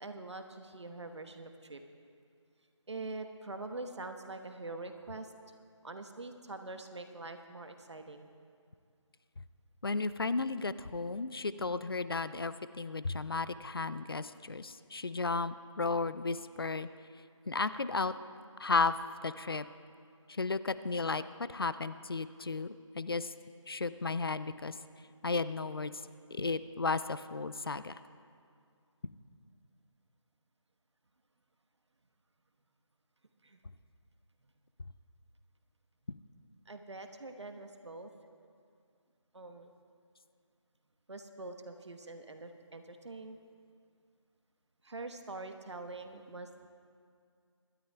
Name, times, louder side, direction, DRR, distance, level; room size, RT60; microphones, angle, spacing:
voice 1, 0.0-1.8 2.9-5.3 5.8-8.3 33.4-33.6 36.6-38.1 39.3-39.7 41.1-43.4 44.8-46.7, right 2 dB, 60° right, 6 dB, 1.2 m, -44 dB
voice 2, 9.8-16.9 17.5-18.1 18.6-18.9 19.2-19.6 20.3-21.2 21.5-23.3 23.7-24.7 25.2-25.9 26.3-27.9, left 3 dB, 50° left, 14 dB, 0.4 m, -34 dB
25.0 x 12.5 x 2.3 m, 2.3 s
figure-of-eight pair, 175°, 16 cm